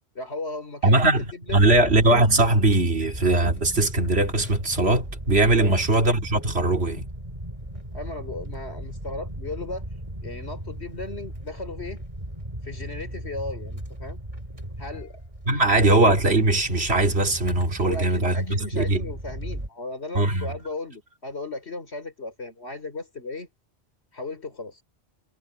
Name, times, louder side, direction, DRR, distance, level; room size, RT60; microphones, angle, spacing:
voice 1, 0.1-1.8 5.6-5.7 7.9-9.9 10.2-12.0 12.6-14.2 14.8-15.2 15.5-15.6 17.8-23.5 24.1-24.8, left 2 dB, 70° left, 4.3 m, -36 dB
voice 2, 0.8-1.2 1.5-7.1 15.5-19.0 20.1-20.5, right 2 dB, 65° right, 2.8 m, -20 dB
sound 1, 1.5-19.7, right 1 dB, 30° right, 3.6 m, -37 dB
omnidirectional pair, 1.2 m